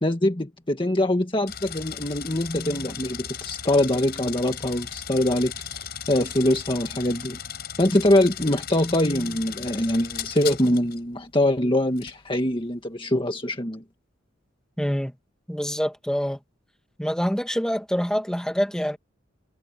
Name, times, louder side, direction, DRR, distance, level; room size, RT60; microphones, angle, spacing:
voice 1, 0.0-7.4 7.8-13.8, left 1 dB, 25° left, 1.7 m, -23 dB
sound 1, 1.5-11.0 12.0-12.2, left 8 dB, 55° left, 5.5 m, -36 dB
voice 2, 14.8-15.1 15.5-16.4 17.0-19.0, equal, 5° left, 2.5 m, -25 dB
head